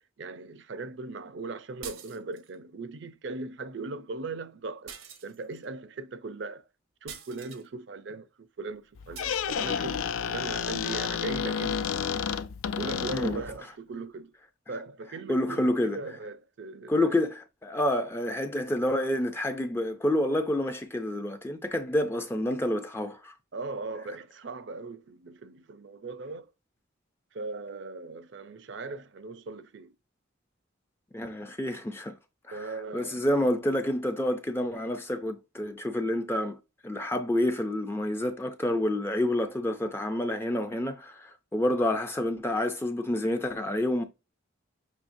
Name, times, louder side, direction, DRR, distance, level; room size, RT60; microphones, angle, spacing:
voice 1, 0.0-4.9 5.2-6.6 7.0-11.8 12.8-14.3 14.7-17.1 23.5-26.5 27.3-29.9 32.5-33.6, right 3 dB, 60° right, 0.5 m, -39 dB
sound 1, 1.8-2.6 4.9-5.7 7.1-7.7 9.1-9.4, right 8 dB, 85° right, 0.8 m, -45 dB
Squeak, 9.0-13.6, left 7 dB, 85° left, 0.4 m, -31 dB
voice 2, 15.3-16.0 16.9-17.3 17.6-23.3 31.1-32.1 32.5-36.6 36.8-44.0, left 1 dB, 10° left, 0.4 m, -28 dB
6.3 x 3.1 x 2.6 m
head